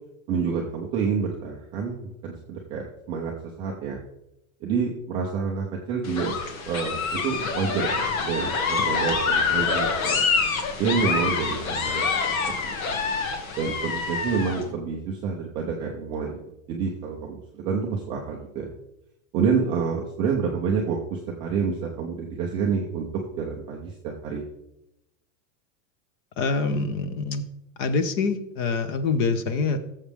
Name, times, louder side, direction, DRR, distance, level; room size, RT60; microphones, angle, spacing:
voice 1, 0.3-3.3 3.6-4.0 4.6-6.3 6.7-10.2 10.8-12.1 12.6-13.0 13.6-16.4 16.7-18.7 19.3-23.1 23.4-23.9 24.2-24.4, right 5 dB, 15° right, -2 dB, 0.4 m, -28 dB
sound 1, 6.0-14.6, left 5 dB, 75° left, 1.9 m, -26 dB
voice 2, 26.4-27.4 27.8-29.8, left 4 dB, 30° left, 11 dB, 0.7 m, -25 dB
16.0 x 7.3 x 3.4 m, 0.86 s
supercardioid pair, 170°, 41 cm